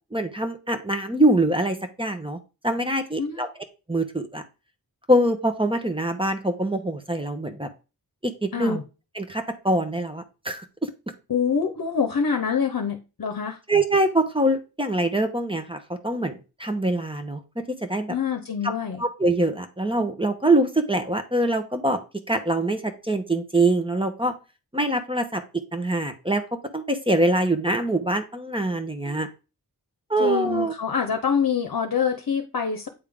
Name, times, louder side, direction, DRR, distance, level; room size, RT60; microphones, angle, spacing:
voice 1, 0.1-3.5 3.9-4.4 5.1-7.7 8.2-8.8 9.1-10.9 13.7-18.1 18.6-18.7 19.0-22.0 22.3-24.3 24.7-25.4 25.7-29.3 30.1-30.7, right 1 dB, 15° right, 6 dB, 0.9 m, -24 dB
voice 2, 11.3-13.6 18.1-19.0 29.0-29.2 30.2-32.9, left 6 dB, 60° left, 4 dB, 0.8 m, -26 dB
8.3 x 3.6 x 3.5 m, 0.30 s
wide cardioid pair, 70°, 38 cm